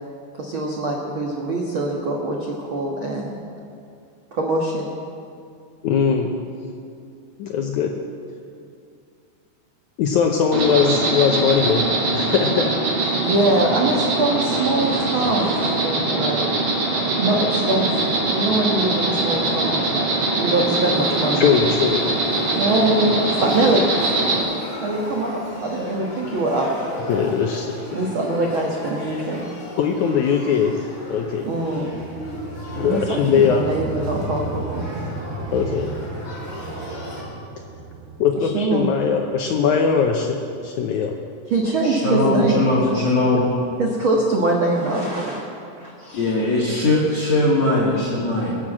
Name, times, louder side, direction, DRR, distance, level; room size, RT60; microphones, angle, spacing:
voice 1, 0.3-3.4 4.3-4.9 13.2-16.4 17.2-20.1 20.4-21.4 22.5-23.8 24.8-26.7 27.9-29.4 31.4-31.9 32.8-34.8 38.5-38.9 41.5-43.0 43.8-46.3, right 2 dB, 70° right, -1 dB, 1.2 m, -23 dB
voice 2, 5.8-6.3 7.4-7.9 10.0-11.9 12.1-12.7 21.3-22.0 27.1-27.8 29.8-30.7 31.1-31.5 32.7-33.7 35.5-35.9 38.2-40.4 40.6-41.2, left 6 dB, 85° left, 2 dB, 1.7 m, -20 dB
Insect, 10.5-24.4, right 2 dB, 45° right, 3.8 m, -22 dB
Male speech man speaking / Child speech kid speaking / Conversation, 20.5-37.2, equal, 30° left, 4.4 m, -36 dB
sound 1, 31.0-41.0, right 2 dB, 85° right, 1.4 m, -35 dB
voice 3, 41.8-43.4 46.1-48.5, left 2 dB, 50° left, -6 dB, 2.7 m, -20 dB
21.5 x 8.3 x 7.5 m, 2.4 s
omnidirectional pair, 4.5 m